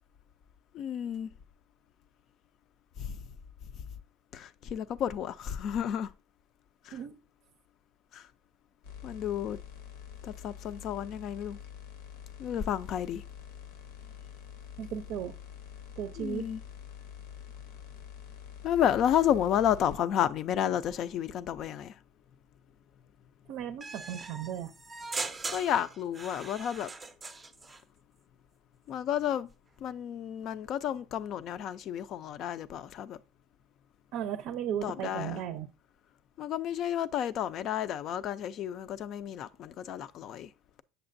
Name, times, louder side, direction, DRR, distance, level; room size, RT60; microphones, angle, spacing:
voice 1, 0.7-1.3 3.0-3.2 3.7-3.8 4.3-6.1 6.8-7.0 8.1-8.3 9.0-9.6 10.2-11.6 12.4-13.2 16.2-16.6 18.6-22.0 25.5-26.9 28.9-29.5 29.8-33.2 34.8-35.4 36.4-40.5, left 10 dB, 45° left, 0.4 m, -31 dB
sound 1, 8.8-20.0, left 8 dB, 90° left, 0.9 m, -46 dB
voice 2, 14.8-15.3 16.0-16.5 23.5-24.7 34.1-35.7, right 9 dB, 60° right, 0.5 m, -35 dB
sound 2, 23.8-27.8, right 3 dB, 15° right, 0.5 m, -40 dB
7.8 x 6.5 x 2.6 m
supercardioid pair, 125°, 0 cm